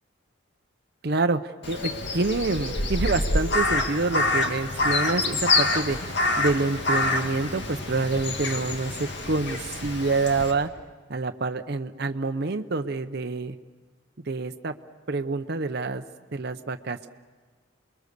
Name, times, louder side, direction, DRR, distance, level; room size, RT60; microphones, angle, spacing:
voice 1, 1.0-1.4 1.7-6.0 6.4-10.7 11.1-13.6 14.3-14.7 15.1-16.0 16.3-17.1, right 3 dB, 50° right, 7 dB, 0.7 m, -27 dB
Crow, 1.6-10.5, left 2 dB, 55° left, 2.3 m, -26 dB
29.0 x 22.0 x 6.7 m, 1.5 s
head